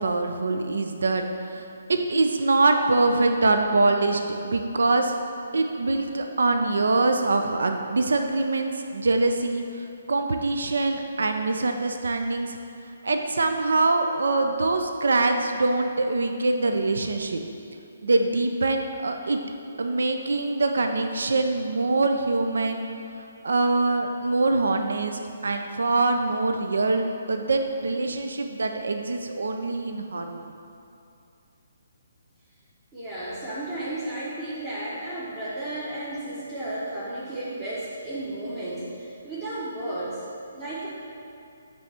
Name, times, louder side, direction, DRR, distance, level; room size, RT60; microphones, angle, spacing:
voice 1, 0.0-5.2 5.5-12.6 13.0-17.4 18.0-19.4 19.8-22.9 23.4-30.5, right 3 dB, 75° right, 5 dB, 0.4 m, -24 dB
voice 2, 32.9-40.9, right 1 dB, 25° right, -10 dB, 1.1 m, -33 dB
7.5 x 3.5 x 4.2 m, 2.6 s
figure-of-eight pair, 140°, 0 cm